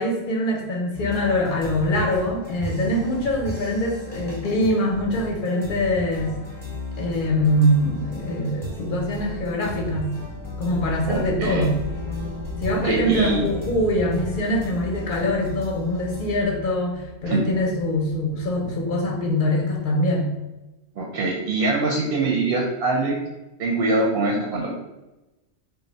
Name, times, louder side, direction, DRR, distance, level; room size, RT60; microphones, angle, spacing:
voice 1, 0.0-6.3 7.0-10.1 10.6-11.8 12.6-20.3, left 1 dB, 60° left, -1 dB, 0.6 m, -23 dB
sound 1, 0.9-16.4, left 1 dB, 5° left, 0.6 m, -36 dB
sound 2, 9.7-19.7, left 2 dB, 90° left, 0.9 m, -37 dB
voice 2, 11.1-11.6 12.8-13.5 17.2-17.4 21.0-23.2 23.6-24.7, right 3 dB, 60° right, -1 dB, 0.7 m, -23 dB
2.5 x 2.0 x 3.9 m, 1.0 s
omnidirectional pair, 1.2 m